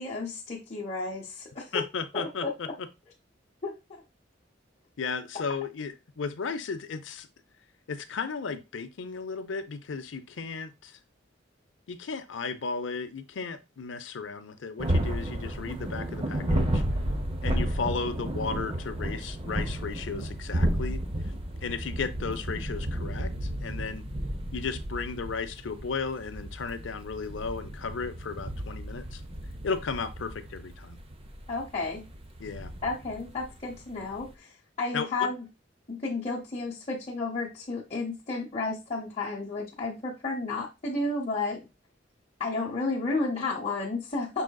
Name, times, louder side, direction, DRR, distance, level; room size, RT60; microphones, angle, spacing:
voice 1, 0.0-1.8 2.1-2.5 3.6-4.0 31.5-32.0 32.8-34.5 34.8-35.4 35.9-41.6 42.4-44.4, left 3 dB, 35° left, -4 dB, 0.9 m, -32 dB
voice 2, 1.7-2.9 5.0-7.3 7.9-11.0 11.9-16.8 17.4-21.0 21.6-24.0 24.5-29.2 29.6-31.0 32.4-32.7 34.9-35.3, left 5 dB, 80° left, 11 dB, 0.6 m, -35 dB
sound 1, 14.8-34.3, right 1 dB, 30° right, 0.6 m, -33 dB
5.5 x 3.8 x 2.3 m, 0.25 s
head